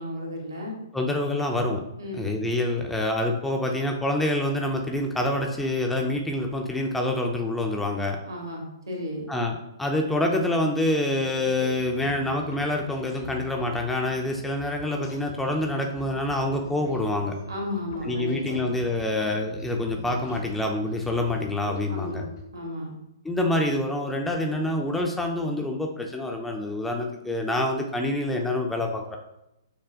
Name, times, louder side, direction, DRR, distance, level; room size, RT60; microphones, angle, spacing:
voice 1, 0.0-0.8 2.0-2.3 8.2-9.3 17.5-18.6 21.9-22.3 22.5-22.9, left 1 dB, 70° right, 0 dB, 1.1 m, -34 dB
voice 2, 0.9-1.8 2.1-8.2 9.3-17.4 18.0-22.2 23.2-29.2, left 1 dB, 5° left, 1 dB, 0.4 m, -26 dB
sound 1, 11.2-22.4, left 2 dB, 55° left, 0.7 m, -44 dB
5.9 x 2.1 x 2.4 m, 0.87 s
figure-of-eight pair, 120°, 2 cm